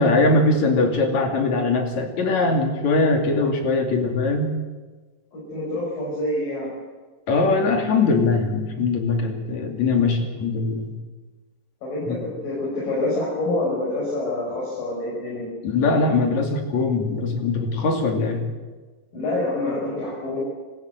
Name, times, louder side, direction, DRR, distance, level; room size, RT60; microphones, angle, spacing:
voice 1, 0.0-4.5 7.3-10.9 12.1-12.3 15.6-18.5, left 3 dB, 55° left, 4 dB, 3.8 m, -21 dB
voice 2, 5.3-6.8 11.8-15.5 19.1-20.4, left 1 dB, 70° left, -5 dB, 7.6 m, -27 dB
26.0 x 14.5 x 8.1 m, 1.3 s
omnidirectional pair, 4.1 m